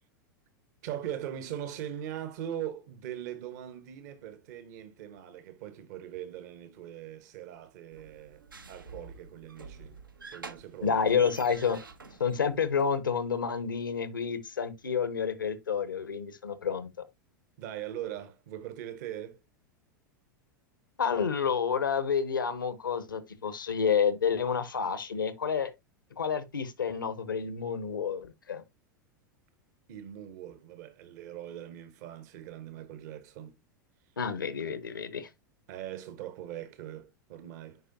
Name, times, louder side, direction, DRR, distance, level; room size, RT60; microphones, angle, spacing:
voice 1, 0.8-8.4 8.7-11.2 17.6-19.4 29.9-33.6 35.7-37.8, right 11 dB, 55° right, 1.1 m, -41 dB
sound 1, 7.9-13.0, right 4 dB, 85° right, 1.0 m, -48 dB
voice 2, 10.8-11.8 12.2-16.9 21.0-25.7 26.1-28.6 34.2-35.3, left 6 dB, 80° left, 1.0 m, -29 dB
9.4 x 5.1 x 2.8 m
figure-of-eight pair, 90°, 11 cm